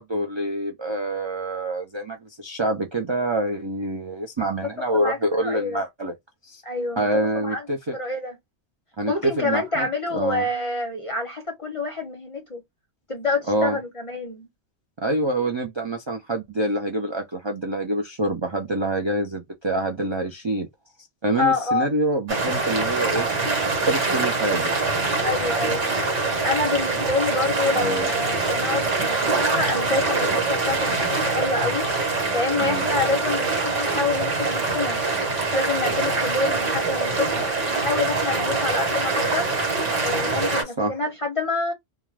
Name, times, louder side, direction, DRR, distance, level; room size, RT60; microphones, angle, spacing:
voice 1, 0.0-6.1 6.4-6.6 7.0-8.0 9.0-10.5 13.5-13.8 15.0-20.7 21.2-23.3 23.6-24.7 27.8-28.1 32.6-32.9 40.8-41.0, right 1 dB, 40° right, 0.4 m, -26 dB
voice 2, 4.9-5.8 6.6-7.1 7.3-7.6 7.9-8.4 9.1-12.6 13.1-14.5 21.4-21.9 25.2-25.8 26.1-31.9 32.3-35.0 35.4-39.7 40.0-41.7, left 3 dB, 35° left, 0.7 m, -27 dB
sound 1, 22.3-40.6, right 3 dB, 75° right, 1.4 m, -24 dB
2.4 x 2.3 x 3.2 m
omnidirectional pair, 1.2 m